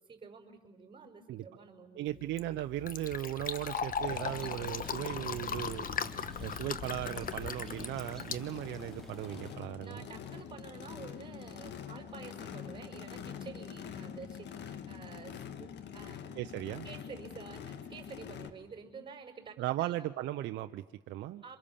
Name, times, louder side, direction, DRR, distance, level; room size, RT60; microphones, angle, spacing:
voice 1, 0.1-2.3 9.8-16.2 16.8-19.9 21.4-21.6, right 5 dB, 25° right, 1 dB, 5.1 m, -50 dB
voice 2, 2.0-5.9 6.4-10.0 16.3-16.9 19.6-21.4, right 14 dB, 70° right, 8 dB, 0.8 m, -37 dB
Fill (with liquid), 2.1-9.2, left 7 dB, 45° left, 1.4 m, -39 dB
Race car auto racing / Idling / Accelerating revving vroom, 4.0-18.5, left 8 dB, 65° left, 1.8 m, -45 dB
sound 1, 4.1-9.6, right 1 dB, ahead, 2.7 m, -52 dB
27.0 x 26.0 x 7.2 m, 1.1 s
supercardioid pair, 70°, 20 cm